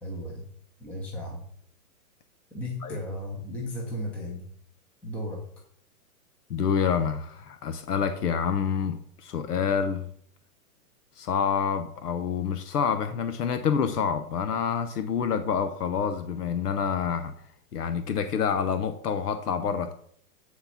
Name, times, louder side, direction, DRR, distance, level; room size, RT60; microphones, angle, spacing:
voice 1, 0.0-0.5 0.8-1.4 2.5-4.4 5.0-5.5, left 1 dB, 5° left, -1 dB, 0.6 m, -35 dB
voice 2, 6.5-10.1 11.2-17.3 17.7-19.9, left 7 dB, 85° left, 9 dB, 1.0 m, -27 dB
9.5 x 4.4 x 5.7 m, 0.63 s
hypercardioid pair, 150°, 45 cm